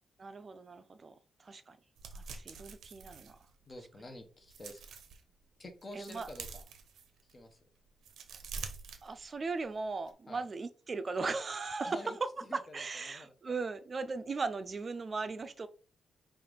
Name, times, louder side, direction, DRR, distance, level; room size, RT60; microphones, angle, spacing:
voice 1, 0.2-1.1 1.4-1.8 2.1-3.4 6.0-6.3 9.0-12.0 12.7-15.7, right 4 dB, 40° right, 0.5 m, -38 dB
sound 1, 2.0-3.9 4.3-5.2 5.7-7.4 7.9-9.6 9.9-10.1, right 5 dB, 85° right, 0.7 m, -47 dB
voice 2, 3.7-4.8 5.6-6.7 7.2-7.6 10.3-10.4 11.8-13.3, left 1 dB, 30° left, 1.0 m, -48 dB
5.5 x 2.6 x 3.4 m
cardioid pair, 100°, 0 cm